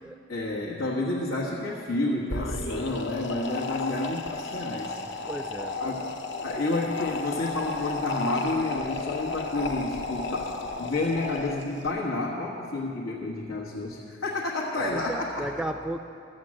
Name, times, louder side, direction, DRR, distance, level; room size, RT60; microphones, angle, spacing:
voice 1, 0.3-4.9 5.8-6.1 6.4-15.5, left 2 dB, 90° left, -4 dB, 1.4 m, -30 dB
sound 1, 2.2-11.9, left 3 dB, 60° left, 0.7 m, -33 dB
voice 2, 5.3-5.9 14.7-16.0, right 1 dB, 5° right, 7 dB, 0.4 m, -34 dB
13.0 x 7.6 x 7.5 m, 2.5 s
head